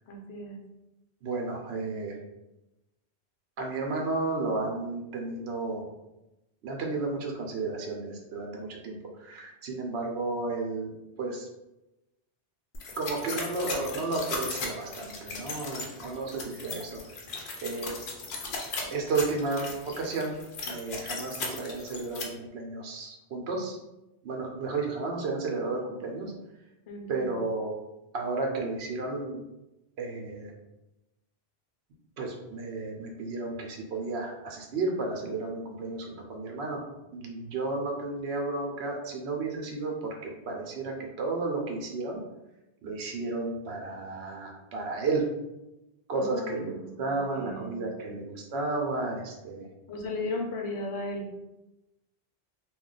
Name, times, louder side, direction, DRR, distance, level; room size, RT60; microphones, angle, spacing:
voice 1, 0.1-0.6 26.9-27.4 46.1-47.9 49.9-51.3, left 2 dB, 80° left, 1 dB, 0.9 m, -36 dB
voice 2, 1.2-2.1 3.6-5.8 6.6-10.9 11.2-11.5 13.0-17.0 17.6-17.9 18.9-20.4 20.7-23.8 24.2-26.3 27.1-27.7 28.1-29.4 30.0-30.5 32.2-36.8 37.1-42.2 42.8-45.2 46.1-46.7 47.0-49.7, right 3 dB, 80° right, 0 dB, 0.9 m, -32 dB
sound 1, 12.7-22.2, left 3 dB, 60° left, 0.7 m, -37 dB
2.3 x 2.2 x 3.8 m, 0.96 s
omnidirectional pair, 1.1 m